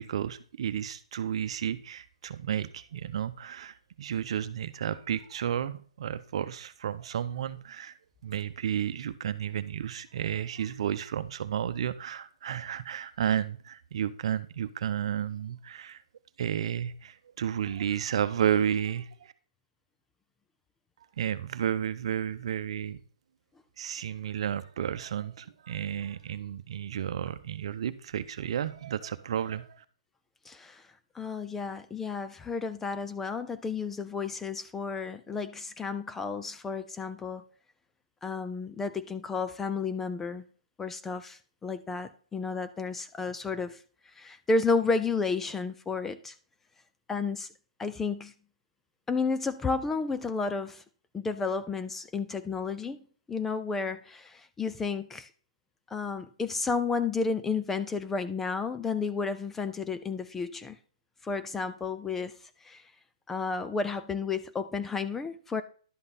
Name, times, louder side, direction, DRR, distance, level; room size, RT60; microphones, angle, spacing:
voice 1, 0.0-16.0 16.4-19.3 21.2-23.0 23.8-29.8, right 9 dB, 55° right, 13 dB, 0.8 m, -32 dB
voice 2, 30.5-30.9 31.1-37.4 38.2-40.4 40.8-46.3 47.1-47.5 47.8-48.3 49.1-50.8 51.1-53.0 53.3-55.3 55.9-60.8 61.2-62.9 63.3-65.6, left 4 dB, 5° left, 11 dB, 0.3 m, -32 dB
11.5 x 5.6 x 4.1 m, 0.42 s
hypercardioid pair, 160°, 4 cm